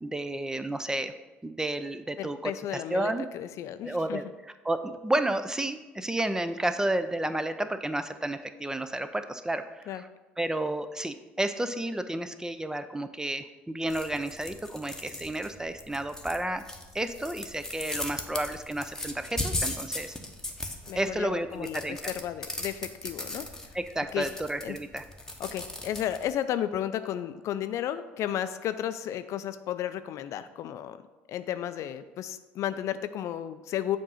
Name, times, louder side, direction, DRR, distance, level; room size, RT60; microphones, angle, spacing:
voice 1, 0.0-1.1 1.4-3.3 3.8-4.2 4.6-10.1 10.4-16.7 16.9-20.2 20.9-22.0 23.7-25.0, right 1 dB, 10° right, 10 dB, 0.4 m, -31 dB
voice 2, 2.2-4.2 9.9-10.0 20.9-23.5 24.1-24.3 24.6-24.8 25.4-31.0 31.3-34.0, left 11 dB, 55° left, 11 dB, 0.4 m, -33 dB
sound 1, 13.9-26.3, left 1 dB, 10° left, 0.9 m, -38 dB
7.2 x 2.6 x 5.5 m, 1.1 s
hypercardioid pair, 65°, 6 cm